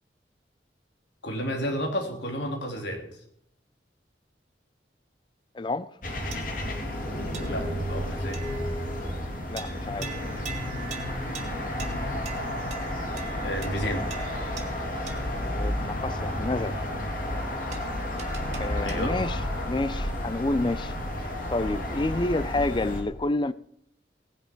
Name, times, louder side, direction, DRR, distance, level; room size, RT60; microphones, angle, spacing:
voice 1, 1.2-3.0 7.5-8.4 13.4-14.1 18.8-19.1, equal, 85° left, 3.3 m, -31 dB
voice 2, 5.5-5.9 9.5-10.1 15.1-16.8 18.5-20.9 21.5-23.5, left 2 dB, 25° left, 0.4 m, -29 dB
sound 1, 6.0-23.0, left 1 dB, 50° left, 2.5 m, -31 dB
sound 2, 6.3-6.8 7.3-7.8 8.3-8.8 9.6-15.4 17.7-19.3, right 7 dB, 40° right, 2.4 m, -43 dB
17.5 x 10.0 x 4.6 m
head